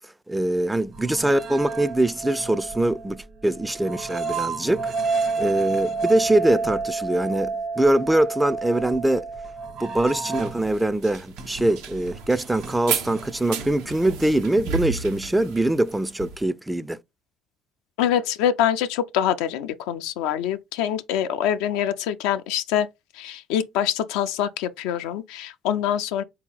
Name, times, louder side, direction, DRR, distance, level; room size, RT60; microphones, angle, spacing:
voice 1, 0.3-9.3 9.8-17.0, right 1 dB, 10° right, 0.4 m, -23 dB
sound 1, 0.9-10.8 11.1-14.4, right 4 dB, 60° right, 1.4 m, -30 dB
sound 2, 10.4-16.4, right 6 dB, 75° right, 0.8 m, -33 dB
voice 2, 18.0-22.9 23.2-26.2, left 10 dB, 75° left, 0.4 m, -25 dB
4.1 x 2.8 x 3.8 m
hypercardioid pair, 55°, 0 cm